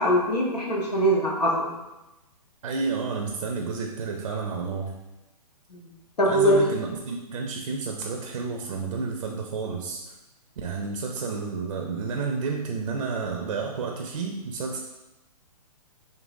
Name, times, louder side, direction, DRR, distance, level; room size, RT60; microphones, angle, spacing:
voice 1, 0.0-1.7 5.7-5.8 6.2-6.7, equal, 85° left, -3 dB, 1.2 m, -22 dB
voice 2, 2.6-4.9 6.2-10.0 10.6-14.8, right 4 dB, 65° right, 2 dB, 0.6 m, -30 dB
5.3 x 2.8 x 2.6 m, 1.0 s
hypercardioid pair, 130°, 20 cm